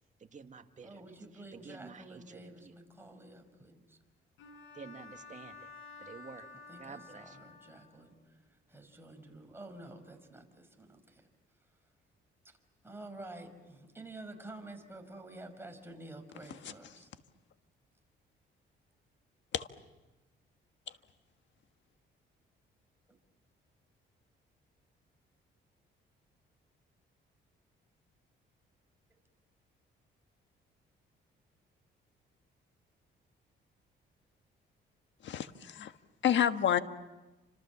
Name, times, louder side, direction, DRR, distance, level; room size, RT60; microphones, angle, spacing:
voice 1, 0.2-2.8 4.7-5.7 6.0-6.5 6.8-7.5, right 5 dB, 40° right, 6 dB, 2.0 m, -50 dB
voice 2, 0.8-4.0 6.7-8.1 8.7-11.2 12.8-17.1, right 2 dB, 10° right, 4 dB, 5.6 m, -49 dB
Bowed string instrument, 4.4-8.1, left 4 dB, 80° left, 7.1 m, -52 dB
voice 3, 16.5-17.0 19.5-19.7 20.9-21.0 35.2-35.9 36.2-36.8, left 9 dB, 65° left, 9 dB, 1.5 m, -30 dB
29.5 x 26.5 x 7.4 m, 1.1 s
cardioid pair, 90°, 20 cm